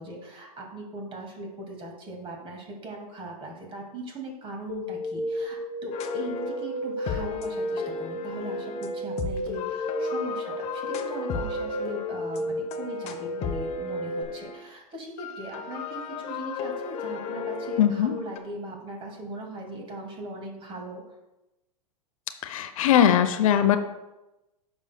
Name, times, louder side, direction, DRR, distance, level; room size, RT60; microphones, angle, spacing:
voice 1, 0.0-21.0, right 2 dB, 25° right, 2 dB, 2.1 m, -39 dB
sound 1, 4.7-14.2, equal, 65° right, 2.2 m, -33 dB
sound 2, 5.9-14.7 15.2-18.4, left 6 dB, 35° left, 0.9 m, -35 dB
voice 2, 17.8-18.1 22.4-23.8, left 9 dB, 65° left, 9 dB, 0.7 m, -20 dB
9.6 x 6.2 x 2.2 m, 0.97 s
hypercardioid pair, 105°, 19 cm